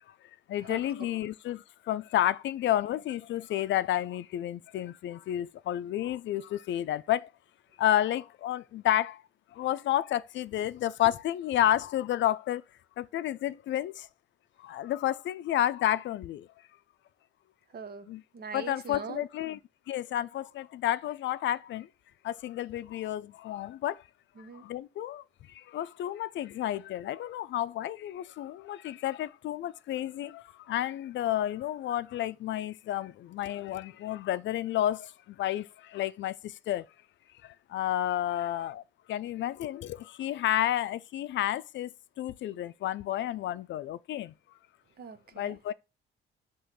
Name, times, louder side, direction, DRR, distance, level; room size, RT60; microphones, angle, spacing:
voice 1, 0.5-1.6 1.9-7.2 7.8-9.1 9.6-12.6 13.0-13.9 14.7-16.4 18.1-18.2 18.5-19.6 19.9-21.8 22.3-23.9 24.7-25.2 25.7-30.3 30.7-35.0 35.4-35.6 35.9-36.3 36.7-36.8 37.7-38.8 39.1-39.9 40.2-41.9 42.2-44.3 45.4-45.7, left 12 dB, 70° left, 0.5 m, -30 dB
voice 2, 17.7-19.2 24.4-24.6 45.0-45.6, right 5 dB, 50° right, 0.9 m, -42 dB
6.5 x 3.1 x 5.8 m
cardioid pair, 90°, 20 cm